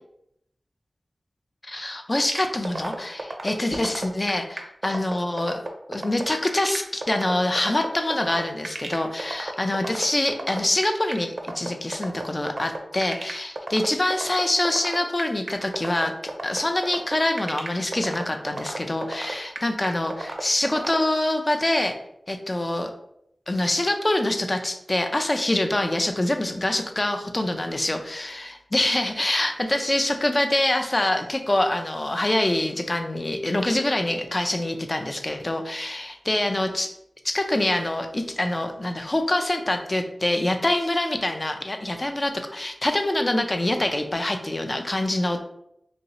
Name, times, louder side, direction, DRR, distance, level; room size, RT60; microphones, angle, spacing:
voice 1, 1.7-5.6 5.9-16.1 16.4-22.0 22.3-22.9 23.5-36.9 37.2-45.4, left 1 dB, 30° left, 5 dB, 0.4 m, -25 dB
sound 1, 2.3-21.0, right 2 dB, 50° right, 0.4 m, -32 dB
3.0 x 2.6 x 2.8 m, 0.78 s
wide cardioid pair, 90°, 0 cm